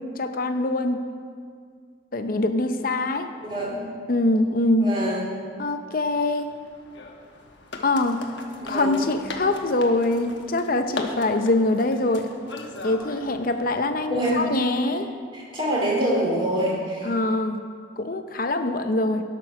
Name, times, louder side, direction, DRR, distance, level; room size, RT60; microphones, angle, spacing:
voice 1, 0.2-1.0 2.1-3.3 4.1-4.9 5.6-6.5 7.8-8.3 8.7-12.2 12.8-15.1 17.0-17.6 18.0-19.2, left 2 dB, 45° left, 7 dB, 0.6 m, -23 dB
voice 2, 3.4-3.9 4.8-5.3 8.5-9.0 14.1-14.4 15.3-17.1, right 1 dB, 25° right, -4 dB, 2.4 m, -25 dB
sound 1, 6.0-13.9, left 3 dB, 65° left, 1.0 m, -39 dB
12.0 x 6.1 x 5.7 m, 2.1 s
head